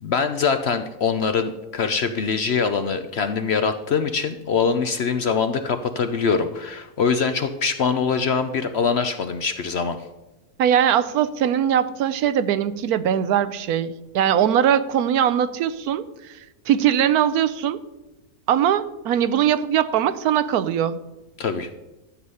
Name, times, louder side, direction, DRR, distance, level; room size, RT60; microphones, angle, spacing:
voice 1, 0.0-10.0 21.4-21.7, left 5 dB, 60° left, 9 dB, 0.7 m, -23 dB
voice 2, 10.6-17.8 18.5-21.0, right 9 dB, 75° right, 14 dB, 1.1 m, -21 dB
13.0 x 8.1 x 5.5 m, 1.0 s
omnidirectional pair, 1.6 m